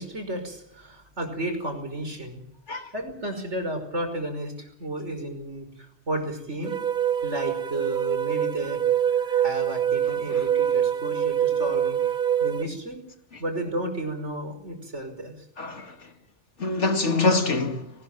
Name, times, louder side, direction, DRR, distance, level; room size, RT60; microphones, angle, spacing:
voice 1, 0.0-2.4 2.9-6.7 7.2-8.8 9.1-12.1 12.4-13.0 13.4-15.3, right 1 dB, 75° right, 5.8 m, -33 dB
sound 1, 6.6-12.6, right 9 dB, 45° right, 1.4 m, -25 dB
voice 2, 15.6-15.9 16.6-17.9, left 3 dB, 75° left, 2.7 m, -25 dB
21.5 x 20.0 x 9.1 m
omnidirectional pair, 1.2 m